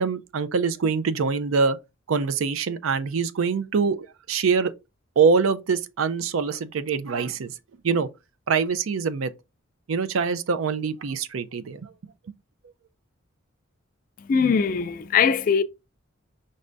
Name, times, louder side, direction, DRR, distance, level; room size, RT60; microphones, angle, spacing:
voice 1, 0.0-1.8 2.1-4.7 5.2-7.5 7.8-8.1 8.5-9.3 9.9-11.9, right 5 dB, 85° right, 0.5 m, -24 dB
voice 2, 14.3-15.6, left 6 dB, 40° left, 0.3 m, -21 dB
5.3 x 2.6 x 3.3 m
head